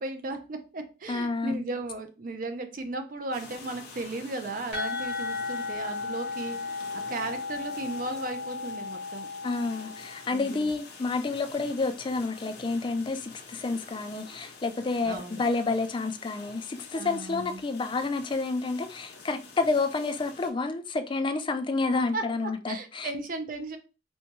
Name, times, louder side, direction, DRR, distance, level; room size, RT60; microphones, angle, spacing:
voice 1, 0.0-6.8 7.1-9.3 10.3-10.7 15.0-15.4 16.9-17.6 22.1-23.8, right 2 dB, 50° right, 0.5 m, -36 dB
voice 2, 1.1-1.6 9.4-23.1, left 3 dB, 25° left, 0.3 m, -29 dB
sound 1, 3.3-20.5, left 4 dB, 60° left, 0.8 m, -48 dB
sound 2, 4.7-10.3, left 3 dB, 70° right, 1.7 m, -35 dB
4.3 x 2.2 x 2.9 m
head